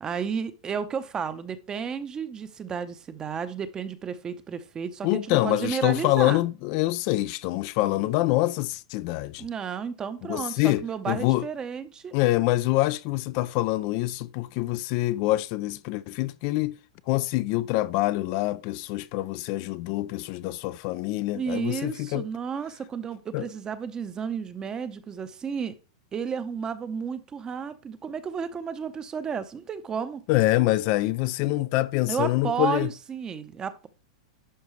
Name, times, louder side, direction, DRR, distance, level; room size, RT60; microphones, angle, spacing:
voice 1, 0.0-6.4 8.0-8.1 9.4-12.1 21.3-25.8 26.1-30.2 32.1-33.9, right 6 dB, 20° right, 0.7 m, -32 dB
voice 2, 5.0-9.5 10.2-11.4 12.1-16.8 17.1-22.2 23.3-23.5 30.3-32.9, left 17 dB, 45° left, 0.3 m, -25 dB
11.0 x 4.6 x 3.2 m
hypercardioid pair, 130°, 3 cm